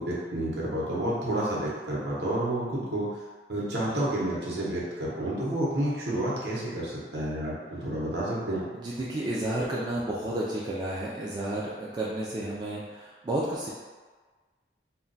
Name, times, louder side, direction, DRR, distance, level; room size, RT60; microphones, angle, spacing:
voice 1, 0.0-3.1 3.5-8.7, right 1 dB, 65° right, -6 dB, 0.8 m, -30 dB
voice 2, 8.7-13.7, right 1 dB, 25° right, -6 dB, 0.3 m, -31 dB
2.2 x 2.2 x 3.8 m, 1.4 s
head